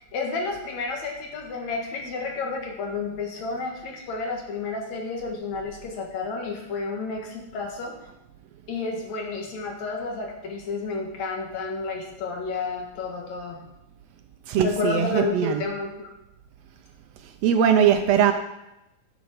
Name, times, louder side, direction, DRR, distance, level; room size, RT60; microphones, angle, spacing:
voice 1, 0.0-8.0 8.7-13.7 14.6-16.1, left 4 dB, 75° left, 1 dB, 2.8 m, -31 dB
voice 2, 14.5-15.6 17.4-18.3, right 8 dB, 75° right, 6 dB, 1.7 m, -20 dB
11.5 x 7.2 x 5.1 m, 0.90 s
omnidirectional pair, 3.3 m